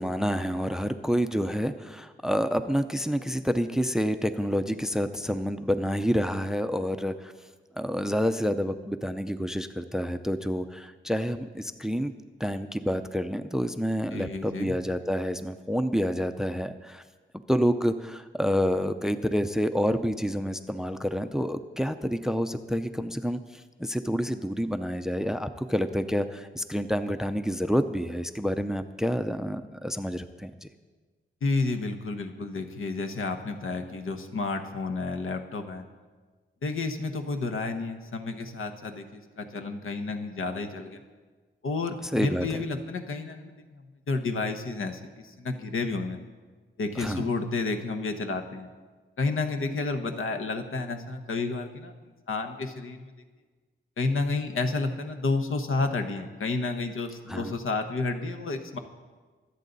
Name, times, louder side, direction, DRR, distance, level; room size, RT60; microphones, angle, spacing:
voice 1, 0.0-7.3 7.8-12.1 12.4-17.0 17.5-30.7 42.1-42.6 47.0-47.3 57.3-57.5, equal, ahead, 10 dB, 0.5 m, -28 dB
voice 2, 14.1-14.7 31.4-35.8 36.6-41.0 41.6-46.2 46.8-48.7 49.2-51.9 52.3-53.1 54.0-58.8, left 3 dB, 80° left, 6 dB, 1.2 m, -31 dB
25.0 x 8.3 x 4.0 m, 1.4 s
wide cardioid pair, 135°, 21 cm